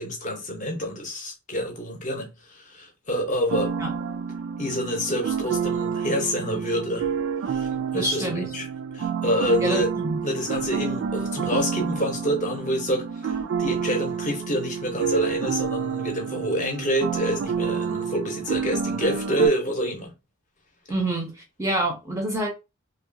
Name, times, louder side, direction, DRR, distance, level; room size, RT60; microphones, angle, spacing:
voice 1, 0.0-3.7 4.6-7.1 7.4-8.7 8.9-9.9 10.2-20.1, equal, 35° left, 0.7 m, -27 dB
sound 1, 3.5-19.5, right 6 dB, 70° right, 0.3 m, -29 dB
voice 2, 7.9-8.5 9.6-10.2 20.9-21.3 21.6-22.5, right 1 dB, 15° right, 0.5 m, -26 dB
2.7 x 2.2 x 2.6 m
head